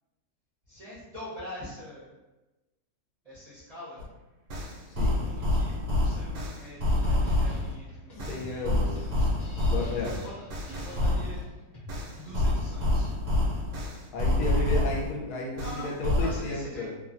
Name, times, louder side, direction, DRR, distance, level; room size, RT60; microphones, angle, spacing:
voice 1, 0.7-2.1 3.2-4.0 5.0-8.5 8.8-9.3 10.0-10.3 10.7-11.4 12.2-13.1 15.6-16.8, left 1 dB, 35° right, -12 dB, 0.6 m, -44 dB
sound 1, 4.0-4.1 4.5-7.7 8.2-11.4 11.9-15.1 15.6-16.4, left 1 dB, 85° right, 1.2 m, -27 dB
voice 2, 5.0-5.3 8.2-9.1 9.7-10.1 14.1-17.0, left 2 dB, 70° left, -2 dB, 1.1 m, -33 dB
sound 2, 6.9-12.3, equal, 40° left, 1.1 m, -47 dB
3.0 x 2.2 x 2.5 m, 1.1 s
omnidirectional pair, 1.8 m